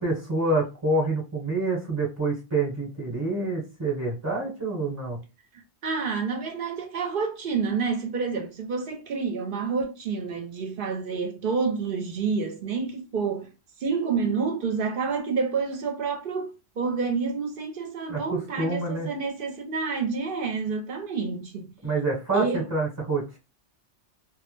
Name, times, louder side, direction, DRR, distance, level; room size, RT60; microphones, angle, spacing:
voice 1, 0.0-5.2 18.1-19.1 21.8-23.4, right 2 dB, 20° right, 0.9 m, -27 dB
voice 2, 5.8-13.5 13.8-21.7 22.3-22.6, right 5 dB, 60° right, 0.7 m, -28 dB
2.3 x 2.0 x 3.0 m
omnidirectional pair, 1.1 m